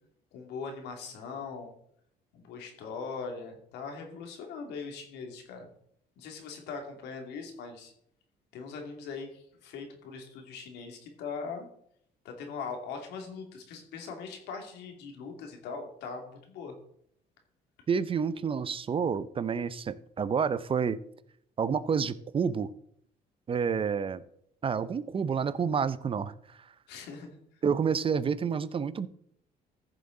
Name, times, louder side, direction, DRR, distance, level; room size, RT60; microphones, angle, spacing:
voice 1, 0.3-1.7 2.3-5.7 6.2-7.9 8.5-11.7 12.2-16.7 26.9-27.3, left 5 dB, 85° left, 3 dB, 2.5 m, -41 dB
voice 2, 17.9-21.0 21.6-22.7 23.5-24.2 24.6-26.3 27.6-29.1, right 6 dB, 30° right, 16 dB, 0.6 m, -29 dB
14.5 x 7.0 x 3.9 m, 0.69 s
cardioid pair, 110°, 17 cm